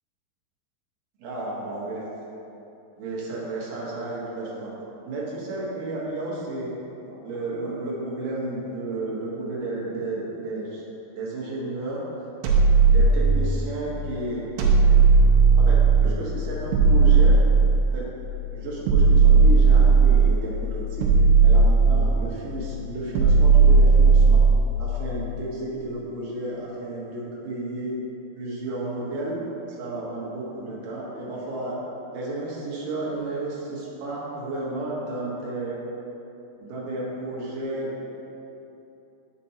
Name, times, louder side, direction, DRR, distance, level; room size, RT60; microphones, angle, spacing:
voice 1, 1.2-2.0 3.0-4.7 5.1-6.7 7.0-10.8 11.2-12.0 12.8-14.5 15.6-17.4 17.9-18.1 18.5-21.1 21.4-24.4 24.8-27.9 28.4-29.4 29.7-31.8 32.1-35.8 36.6-38.1, right 2 dB, 60° right, -6 dB, 2.4 m, -32 dB
sound 1, 12.4-13.8 14.6-16.2 16.7-18.1 18.9-20.5 21.0-22.4 23.2-24.8, right 4 dB, 80° right, 2.9 m, -16 dB
9.2 x 6.7 x 2.9 m, 3.0 s
omnidirectional pair, 5.2 m